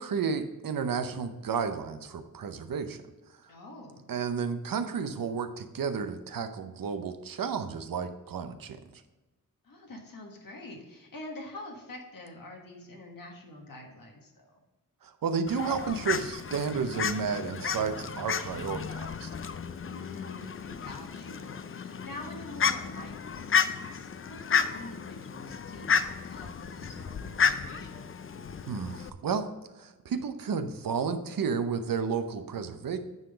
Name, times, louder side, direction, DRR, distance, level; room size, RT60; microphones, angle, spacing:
voice 1, 0.0-3.0 4.1-9.0 15.0-19.3 28.7-29.5 29.8-33.0, right 6 dB, 80° right, 9 dB, 0.7 m, -32 dB
voice 2, 3.5-4.0 9.6-14.6 19.9-25.9 26.2-28.1, left 2 dB, 75° left, 0 dB, 1.5 m, -46 dB
Fowl, 15.5-29.1, left 6 dB, 40° left, 0.4 m, -32 dB
9.5 x 3.8 x 5.1 m, 1.1 s
wide cardioid pair, 120°, 34 cm